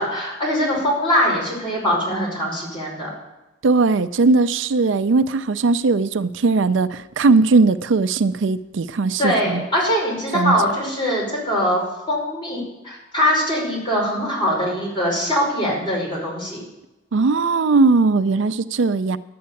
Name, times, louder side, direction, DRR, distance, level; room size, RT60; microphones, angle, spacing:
voice 1, 0.0-3.1 9.2-11.8 12.1-16.6, equal, 25° left, -4 dB, 5.3 m, -22 dB
voice 2, 3.6-9.6 10.3-10.6 17.1-19.2, right 3 dB, 75° right, 13 dB, 0.5 m, -18 dB
11.5 x 8.6 x 7.1 m, 0.99 s
head